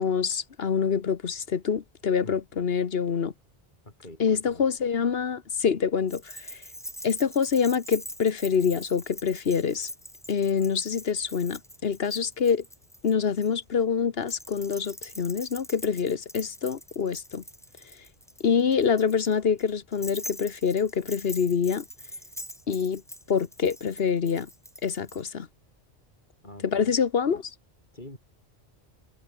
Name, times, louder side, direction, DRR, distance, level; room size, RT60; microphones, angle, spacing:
voice 1, 0.0-3.3 4.2-6.6 7.0-9.9 10.3-12.6 13.0-17.4 18.4-21.8 22.7-23.0 23.3-24.5 24.8-25.5 26.6-27.5, left 6 dB, 60° left, 1.3 m, -26 dB
voice 2, 3.8-4.7 26.4-26.9 27.9-28.2, left 1 dB, 45° left, 7.3 m, -45 dB
Keys jangling, 6.1-13.5 14.2-25.2, equal, ahead, 2.8 m, -43 dB
omnidirectional pair, 1.1 m